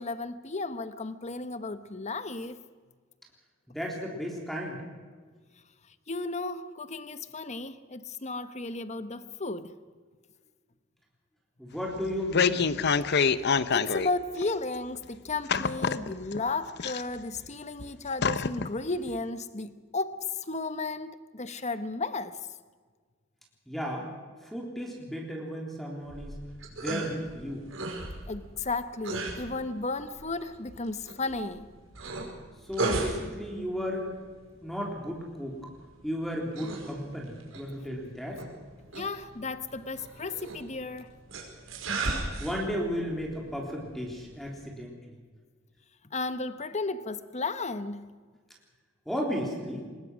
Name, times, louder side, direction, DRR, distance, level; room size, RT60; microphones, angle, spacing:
voice 1, 0.0-2.6 6.1-9.8 13.7-22.4 28.3-31.7 38.9-41.1 46.1-48.1, left 3 dB, 35° left, 1.2 m, -34 dB
voice 2, 3.7-4.8 11.6-12.7 23.7-24.1 24.4-26.4 26.7-27.7 32.6-34.2 34.6-35.6 36.0-38.4 42.4-45.2 49.1-49.9, equal, ahead, 3.5 m, -34 dB
sound 1, 12.0-14.1 14.4-14.5 15.5-16.4 16.8-17.5 17.8-17.9 18.2-18.7 19.1-19.2, left 6 dB, 60° left, 0.8 m, -26 dB
sound 2, 26.0-44.7, right 2 dB, 80° right, 5.3 m, -38 dB
24.0 x 20.5 x 6.3 m
head